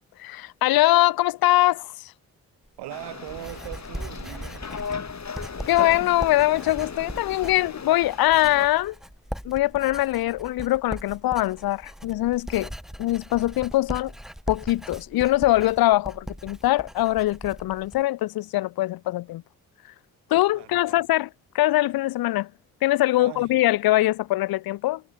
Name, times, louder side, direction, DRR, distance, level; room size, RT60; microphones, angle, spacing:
voice 1, 0.2-2.1 5.7-8.9 9.4-12.7 13.0-14.1 14.5-19.4 20.3-21.3 21.5-22.5 22.8-25.0, left 16 dB, 60° left, 0.8 m, -22 dB
Writing, 2.6-18.0, equal, ahead, 2.7 m, -39 dB
voice 2, 2.8-4.7 20.5-21.1 23.1-23.5, right 16 dB, 75° right, 6.3 m, -40 dB
sound 1, 2.9-8.7, left 6 dB, 40° left, 4.4 m, -36 dB
hypercardioid pair, 45°, 40 cm